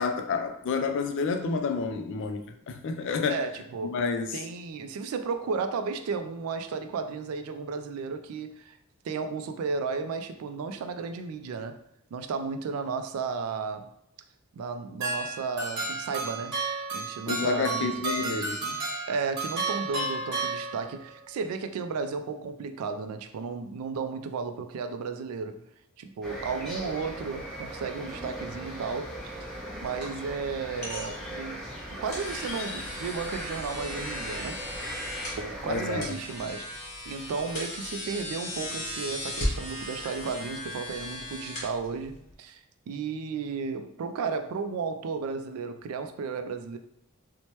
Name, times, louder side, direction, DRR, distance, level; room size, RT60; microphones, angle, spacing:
voice 1, 0.0-3.4 3.8-4.3 17.3-18.8 35.7-36.1, left 4 dB, 55° left, 0.3 m, -29 dB
voice 2, 3.3-4.0 4.3-8.8 9.0-11.8 12.1-13.9 14.5-16.6 16.9-17.9 18.2-18.5 19.1-25.6 26.0-29.4 29.8-31.6 31.9-34.6 35.4-46.8, right 5 dB, 70° right, 0.3 m, -34 dB
sound 1, 15.0-21.2, right 3 dB, 55° right, 1.0 m, -32 dB
sound 2, 26.2-36.1, equal, ahead, 0.8 m, -38 dB
sound 3, 29.1-42.3, left 1 dB, 35° left, 1.1 m, -38 dB
2.9 x 2.1 x 3.0 m
head